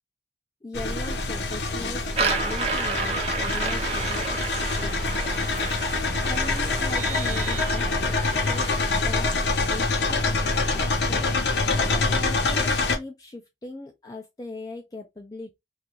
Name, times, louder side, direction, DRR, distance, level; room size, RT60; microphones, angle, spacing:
voice 1, 0.6-5.6 5.9-10.8 11.1-11.3 11.7-15.5, left 2 dB, 20° left, 0.4 m, -39 dB
sound 1, 0.7-13.0, left 3 dB, 80° left, 0.6 m, -25 dB
sound 2, 2.1-8.8, right 4 dB, 35° right, 0.6 m, -31 dB
Vehicle horn car horn honking, 6.9-8.3, right 9 dB, 85° right, 0.4 m, -39 dB
2.4 x 2.4 x 2.9 m
head